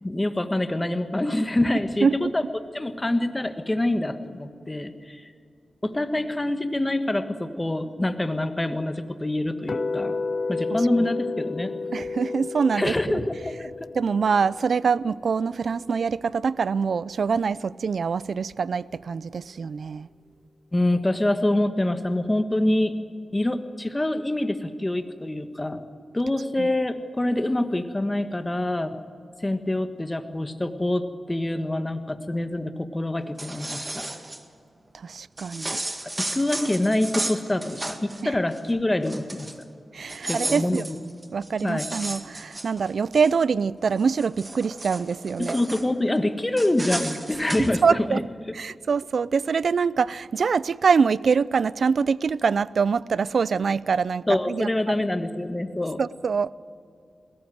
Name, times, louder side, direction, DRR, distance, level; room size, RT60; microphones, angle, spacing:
voice 1, 0.0-2.4 2.7-5.3 5.8-10.2 10.5-11.7 12.7-13.4 20.7-22.9 23.3-25.8 26.1-29.0 29.4-34.1 36.2-39.5 40.2-41.0 41.6-41.9 45.4-48.2 54.3-56.0, left 1 dB, 20° left, 1.5 m, -26 dB
sound 1, 9.7-15.8, left 3 dB, 50° left, 0.9 m, -32 dB
voice 2, 11.9-13.2 14.0-20.1 26.6-26.7 34.9-35.8 38.2-38.3 39.9-40.8 41.3-45.6 47.6-48.2 48.5-54.9 56.0-56.5, right 5 dB, 70° right, 0.5 m, -24 dB
sound 2, 33.2-34.4 35.4-38.2 38.5-38.7 39.0-39.6 40.0-43.3 43.8-45.9 46.6-47.7, right 1 dB, 20° right, 1.9 m, -34 dB
21.0 x 17.5 x 7.8 m
cardioid pair, 65°, 0 cm